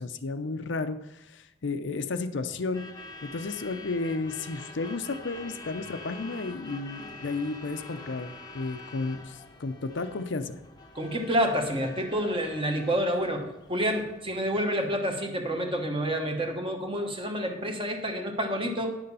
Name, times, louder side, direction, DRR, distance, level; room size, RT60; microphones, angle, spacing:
voice 1, 0.0-2.9 3.2-10.6, left 3 dB, 65° left, 9 dB, 0.6 m, -33 dB
Truck / Alarm, 2.5-14.4, left 2 dB, 20° left, 0.8 m, -46 dB
voice 2, 10.9-18.9, equal, 30° right, 3 dB, 1.2 m, -28 dB
9.6 x 6.7 x 5.5 m, 0.93 s
head